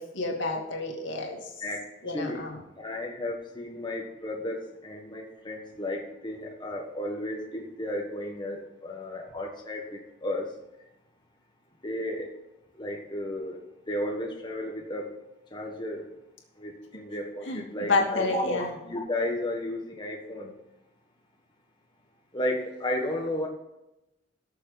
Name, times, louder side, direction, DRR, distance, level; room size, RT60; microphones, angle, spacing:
voice 1, 0.0-1.5 2.0-2.6 17.5-18.7, left 3 dB, 85° left, 1 dB, 2.5 m, -29 dB
voice 2, 2.8-10.5 11.8-12.3 12.8-13.6 13.9-15.1 15.5-16.0 16.6-20.5 22.3-23.5, left 1 dB, 25° left, 0 dB, 1.5 m, -33 dB
18.0 x 6.9 x 4.1 m, 0.93 s
head